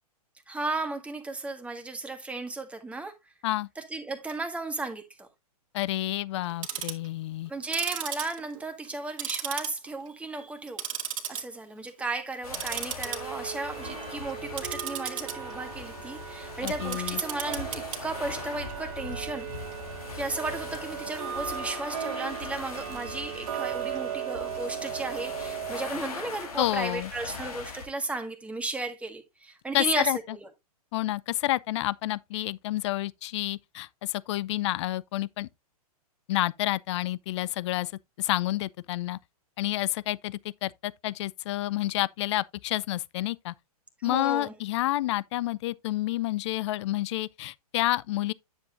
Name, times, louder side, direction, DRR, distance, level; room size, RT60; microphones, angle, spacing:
voice 1, 0.5-3.1 3.7-5.3 7.5-10.8 11.3-19.5 20.1-30.5 44.0-44.5, right 3 dB, 5° right, 1.7 m, -35 dB
voice 2, 5.7-7.5 16.6-17.2 26.6-27.1 29.7-30.2 30.9-35.5 36.3-37.9 38.2-39.2 39.6-43.5 44.0-48.3, left 16 dB, 50° left, 0.5 m, -29 dB
Tick-tock, 6.4-7.1 7.6-8.9 9.2-10.1 10.4-11.4 11.8-12.0 12.5-25.9, right 9 dB, 60° right, 1.9 m, -36 dB
sound 1, 12.4-27.9, left 4 dB, 75° left, 3.5 m, -41 dB
9.9 x 7.4 x 2.5 m
hypercardioid pair, 120°, 19 cm